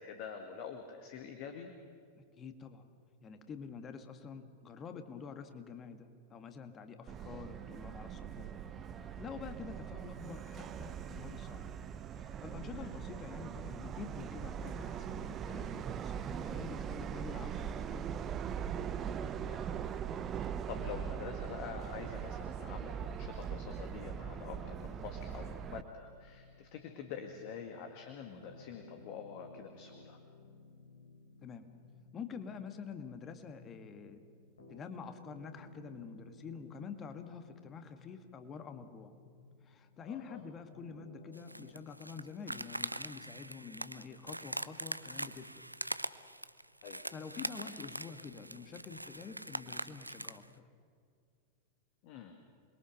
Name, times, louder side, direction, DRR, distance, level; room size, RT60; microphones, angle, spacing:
voice 1, 0.0-1.7 12.7-12.9 19.4-20.0 20.3-30.2 40.1-40.4 46.8-47.0 47.6-47.8 52.0-52.3, left 7 dB, 45° left, 5 dB, 2.0 m, -46 dB
voice 2, 2.4-2.8 3.2-8.5 9.0-11.7 12.2-18.2 31.4-31.7 32.1-34.2 34.7-39.1 39.6-45.6 47.1-50.6, left 6 dB, 25° left, 8 dB, 1.9 m, -47 dB
Subway metro underground, 7.1-25.8, right 8 dB, 25° right, 0.9 m, -41 dB
sound 1, 23.3-41.7, left 3 dB, 75° left, 3.9 m, -58 dB
sound 2, 41.3-50.5, right 1 dB, 85° right, 0.5 m, -42 dB
28.0 x 22.0 x 6.5 m, 2.3 s
figure-of-eight pair, 90°, 0 cm